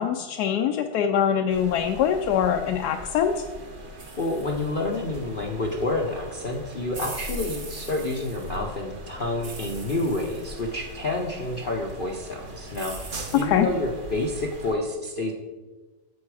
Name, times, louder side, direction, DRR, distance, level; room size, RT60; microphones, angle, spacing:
voice 1, 0.0-3.4 13.4-13.7, left 8 dB, 75° left, 4 dB, 1.1 m, -23 dB
sound 1, 1.5-14.8, right 1 dB, 35° right, 1.1 m, -43 dB
sound 2, 4.0-14.7, right 1 dB, 60° right, 2.1 m, -42 dB
voice 2, 4.2-12.9 13.3-15.3, left 2 dB, 45° left, 0 dB, 0.7 m, -29 dB
9.5 x 7.1 x 4.8 m, 1.3 s
omnidirectional pair, 1.8 m